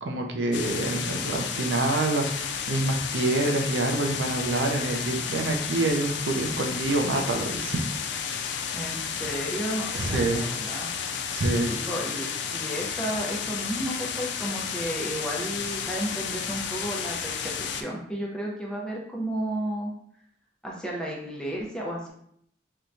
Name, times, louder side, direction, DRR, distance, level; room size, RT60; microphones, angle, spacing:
voice 1, 0.0-7.8 9.9-10.4 11.3-11.7, right 2 dB, 85° right, 3 dB, 0.5 m, -26 dB
sound 1, 0.5-17.8, left 7 dB, 80° left, 0.4 m, -32 dB
voice 2, 8.7-10.9 11.7-19.9 20.6-22.1, right 1 dB, 5° left, -3 dB, 0.6 m, -33 dB
4.5 x 2.2 x 2.6 m, 0.68 s
head